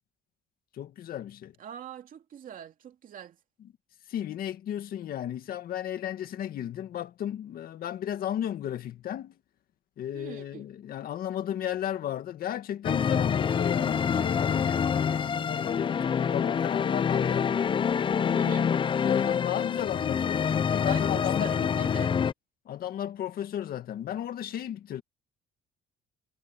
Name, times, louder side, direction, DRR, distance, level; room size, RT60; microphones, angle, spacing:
voice 1, 0.8-1.5 4.1-9.3 10.0-17.5 18.1-21.5 22.7-25.0, left 11 dB, 60° left, 2.1 m, -34 dB
voice 2, 1.6-3.4 10.1-10.7 18.3-18.7 20.8-22.1, right 9 dB, 55° right, 2.6 m, -43 dB
sound 1, 12.8-22.3, left 7 dB, 30° left, 0.5 m, -26 dB
cardioid pair, 110°, 17 cm